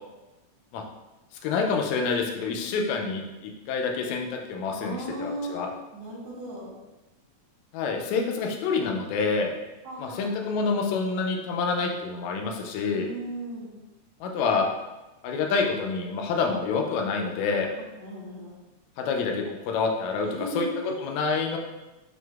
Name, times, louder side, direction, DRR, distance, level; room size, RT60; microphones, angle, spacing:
voice 1, 1.4-5.7 7.7-9.5 10.0-13.1 14.2-14.7 15.2-17.7 19.0-20.3 20.6-20.7 21.0-21.6, left 4 dB, 80° left, 2 dB, 1.8 m, -27 dB
voice 2, 4.7-5.7 5.9-6.7 9.8-10.5 12.9-13.8 17.8-18.6 20.3-20.9, right 1 dB, 75° right, -6 dB, 2.3 m, -37 dB
6.1 x 2.6 x 2.3 m, 1.1 s
omnidirectional pair, 3.4 m